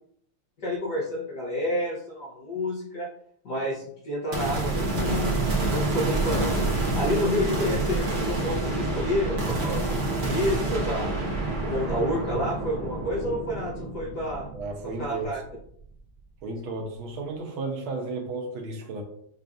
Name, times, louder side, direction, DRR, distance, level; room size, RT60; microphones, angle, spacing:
voice 1, 0.6-3.1 3.4-5.3 5.7-6.6 6.9-11.2 11.6-14.5 14.8-15.4, left 1 dB, 60° left, -6 dB, 1.3 m, -29 dB
sound 1, 4.3-15.7, right 2 dB, 50° right, 0.7 m, -28 dB
voice 2, 14.5-15.3 16.4-19.0, right 3 dB, 80° right, 2 dB, 1.5 m, -33 dB
6.7 x 2.5 x 2.4 m, 0.67 s
omnidirectional pair, 2.3 m